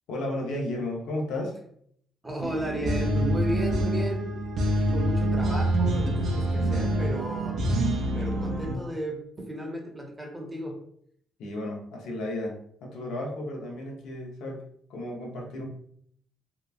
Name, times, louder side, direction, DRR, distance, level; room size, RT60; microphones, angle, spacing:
voice 1, 0.1-1.6 11.4-14.6 14.9-15.7, left 1 dB, 85° left, 0 dB, 0.7 m, -33 dB
voice 2, 2.2-4.3 4.6-7.6 8.1-10.8, right 1 dB, 15° right, 1 dB, 0.7 m, -34 dB
sound 1, 2.4-8.8, right 1 dB, 65° right, 0.4 m, -26 dB
2.9 x 2.2 x 2.4 m, 0.66 s
cardioid pair, 90°, 0 cm